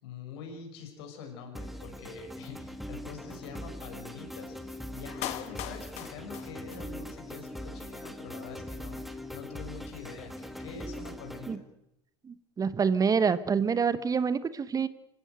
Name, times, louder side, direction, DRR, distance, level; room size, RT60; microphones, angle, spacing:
voice 1, 0.0-11.6, left 5 dB, 65° left, 4 dB, 6.1 m, -45 dB
sound 1, 1.6-11.6, left 1 dB, ahead, 2.0 m, -41 dB
Clapping, 5.2-7.2 7.5-7.6, left 13 dB, 50° left, 1.8 m, -39 dB
voice 2, 12.2-14.9, right 6 dB, 25° right, 15 dB, 1.1 m, -27 dB
27.0 x 15.5 x 8.0 m, 0.84 s
hypercardioid pair, 75°, 14 cm